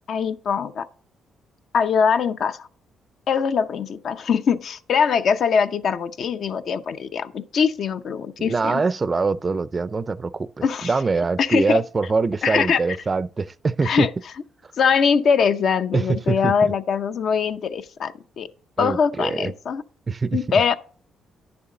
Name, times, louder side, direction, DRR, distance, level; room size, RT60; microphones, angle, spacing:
voice 1, 0.1-0.9 1.7-2.7 3.3-8.8 10.6-10.9 11.4-11.8 12.4-12.8 13.8-14.1 14.8-18.5 18.8-19.8 20.3-20.7, left 6 dB, 60° left, 0.6 m, -22 dB
voice 2, 8.4-14.1 15.9-16.7 18.8-19.5 20.1-20.4, right 4 dB, 30° right, 0.4 m, -24 dB
9.6 x 7.0 x 3.8 m
cardioid pair, 90°, 0 cm